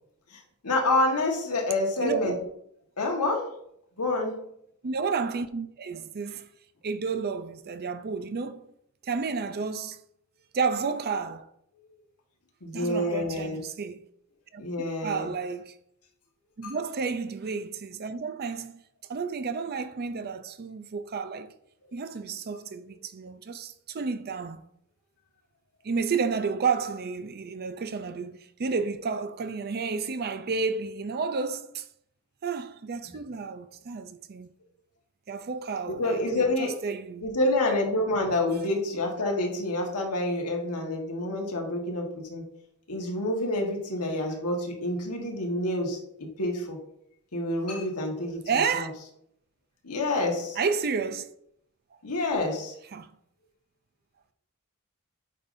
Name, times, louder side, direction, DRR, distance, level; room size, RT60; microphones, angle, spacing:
voice 1, 0.3-2.4 3.0-3.5 4.0-4.5 12.6-13.6 14.6-15.3 16.6-16.7 21.8-22.0 35.9-36.7 37.2-42.4 42.9-46.8 47.3-48.9 49.8-50.6 52.0-52.8, left 2 dB, 90° left, 1.5 m, -28 dB
voice 2, 2.0-2.4 4.8-6.5 6.8-8.7 9.0-10.0 10.5-11.5 12.7-14.1 14.5-14.6 15.0-15.7 16.6-18.8 19.1-21.5 21.9-24.6 25.8-31.9 32.4-34.5 35.3-36.2 36.6-37.3 48.5-48.9 50.6-51.3 52.9-53.1, right 5 dB, 45° right, 0.5 m, -31 dB
8.4 x 5.2 x 2.6 m
head